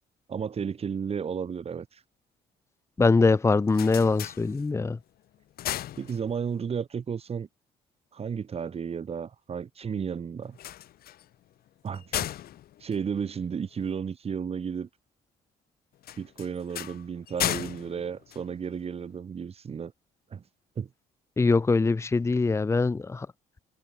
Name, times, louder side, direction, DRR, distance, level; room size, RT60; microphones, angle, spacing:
voice 1, 0.3-2.0 6.0-7.5 8.1-10.6 11.8-12.3 12.8-14.9 16.2-19.9 20.3-20.4 20.8-20.9, right 7 dB, 35° right, 2.5 m, -33 dB
voice 2, 3.0-5.0 21.4-23.3, left 3 dB, 15° left, 0.9 m, -23 dB
sound 1, 3.4-5.0 5.3-6.7 10.4-13.9 16.0-19.1, left 12 dB, 65° left, 2.2 m, -36 dB
cardioid pair, 110°, 17 cm